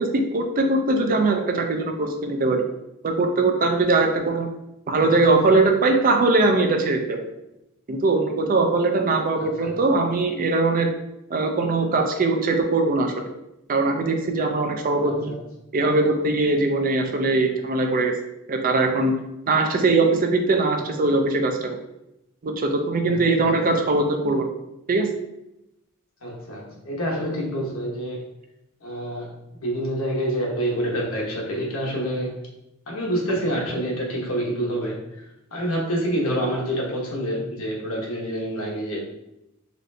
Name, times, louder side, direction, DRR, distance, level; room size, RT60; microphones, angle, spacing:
voice 1, 0.0-2.6 3.0-4.5 4.9-7.2 7.9-10.9 11.3-13.3 13.7-15.4 15.7-18.1 18.5-19.1 19.5-21.8 22.4-24.5 24.9-25.1, right 3 dB, 40° right, 4 dB, 0.5 m, -21 dB
voice 2, 5.0-5.3 9.4-9.7 15.0-15.4 23.1-23.5 26.2-28.2 28.8-32.3 32.9-35.2 35.5-39.0, equal, 75° left, -2 dB, 1.1 m, -27 dB
4.1 x 3.1 x 2.7 m, 0.87 s
head